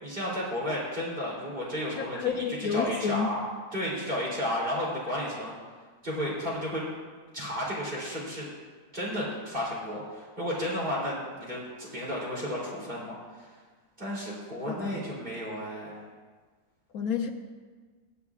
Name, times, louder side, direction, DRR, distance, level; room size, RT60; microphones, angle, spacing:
voice 1, 0.0-2.4 2.7-3.4 3.7-5.5 6.0-6.8 7.3-8.5 8.9-13.5 14.0-16.0, equal, 30° right, -6 dB, 3.5 m, -33 dB
voice 2, 2.1-3.3 14.7-15.0 16.9-17.3, left 7 dB, 65° left, 4 dB, 1.3 m, -29 dB
22.0 x 8.0 x 2.4 m, 1.5 s
omnidirectional pair, 1.7 m